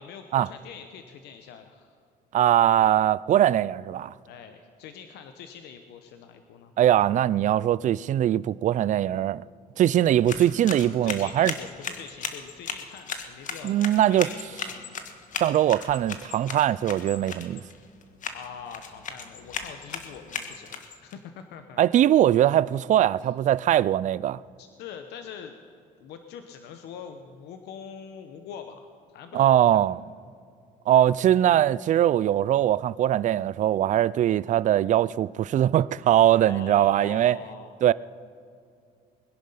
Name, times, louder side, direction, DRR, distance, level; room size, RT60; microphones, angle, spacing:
voice 1, 0.0-2.0 4.3-6.7 11.0-13.7 14.1-14.9 18.3-21.8 23.2-23.3 24.6-25.5 26.0-29.8 36.4-37.7, left 7 dB, 80° left, 1.0 m, -43 dB
voice 2, 2.3-4.1 6.8-9.4 9.8-11.5 13.6-14.3 15.4-17.6 21.8-24.4 29.3-30.0 30.9-37.4 37.8-37.9, right 12 dB, 45° right, 0.4 m, -21 dB
sound 1, 10.0-21.1, left 6 dB, 50° left, 1.5 m, -37 dB
21.5 x 10.5 x 5.6 m
cardioid pair, 110°, 17 cm